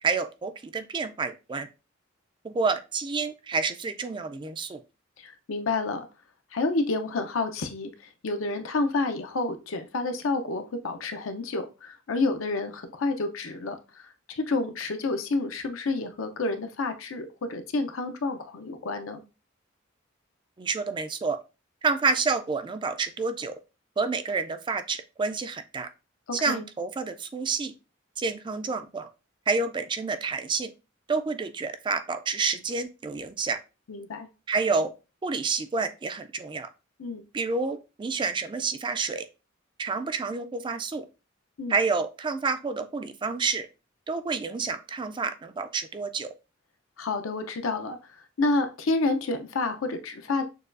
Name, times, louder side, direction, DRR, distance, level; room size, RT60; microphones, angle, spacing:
voice 1, 0.0-1.7 2.4-4.8 20.6-21.4 21.8-23.5 24.0-25.9 26.3-27.7 28.2-29.1 29.5-30.7 31.1-33.6 34.5-34.9 35.2-36.7 37.3-39.3 39.8-41.1 41.7-43.7 44.1-46.3, right 4 dB, 25° right, 0.3 m, -29 dB
voice 2, 5.2-6.1 6.5-7.9 8.2-19.2 26.3-26.6 33.9-34.3 37.0-37.2 41.6-41.8 47.0-48.0 48.4-50.4, left 3 dB, 75° left, 0.6 m, -29 dB
6.5 x 2.3 x 2.5 m
head